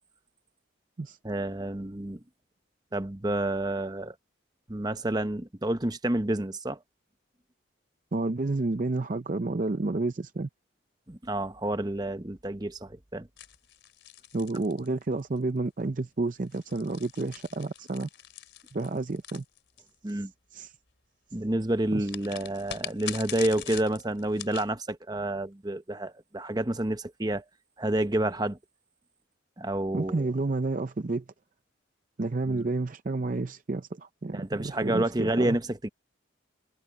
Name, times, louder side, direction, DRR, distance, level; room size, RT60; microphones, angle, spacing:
voice 1, 1.2-2.2 2.9-4.1 4.7-6.8 11.1-13.3 20.0-20.3 21.3-27.4 27.8-28.6 29.6-30.3 32.5-32.7 34.3-35.9, right 1 dB, 20° right, 0.9 m, -29 dB
voice 2, 8.1-10.5 14.3-18.1 18.7-19.4 20.1-20.7 21.9-22.1 29.9-31.2 32.2-35.6, right 2 dB, 40° right, 0.5 m, -30 dB
sound 1, 13.4-15.4 16.3-20.1 22.0-24.7, left 10 dB, 65° left, 3.5 m, -42 dB
head